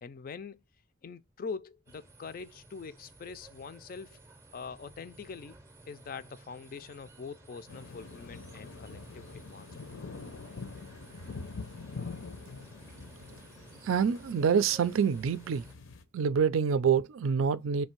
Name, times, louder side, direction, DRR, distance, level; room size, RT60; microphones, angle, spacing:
voice 1, 0.0-0.6 1.0-4.2 4.5-5.6 5.9-9.7, left 5 dB, 45° left, 0.3 m, -43 dB
sound 1, 1.9-15.7, right 2 dB, 15° right, 0.5 m, -55 dB
sound 2, 7.7-16.0, left 4 dB, 80° left, 0.6 m, -45 dB
voice 2, 13.8-15.7 16.1-17.9, right 7 dB, 90° right, 0.4 m, -26 dB
3.2 x 2.7 x 4.4 m
head